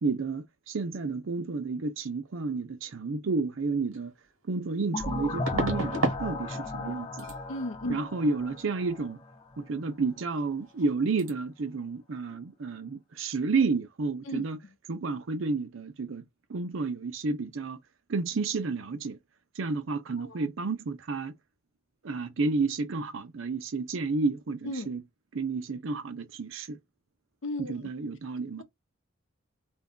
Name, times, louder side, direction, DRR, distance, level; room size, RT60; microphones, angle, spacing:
voice 1, 0.0-4.1 4.5-5.9 6.2-7.3 7.9-9.2 9.6-14.6 14.9-16.2 16.5-17.8 18.1-19.2 19.6-21.3 22.0-25.0 25.3-26.8 27.6-28.6, right 4 dB, 65° right, 0.5 m, -31 dB
sound 1, 3.9-4.0 5.5-6.2 6.5-6.9 7.2-7.4 10.3-10.4 10.7-10.9 11.2-11.3, right 2 dB, 90° right, 1.0 m, -31 dB
sound 2, 4.9-9.6, left 2 dB, 25° left, 0.4 m, -36 dB
voice 2, 7.5-8.0 14.2-14.4 20.2-20.5 24.6-24.9 27.4-27.9 28.6-28.7, left 1 dB, 65° left, 0.6 m, -35 dB
2.6 x 2.2 x 3.6 m
head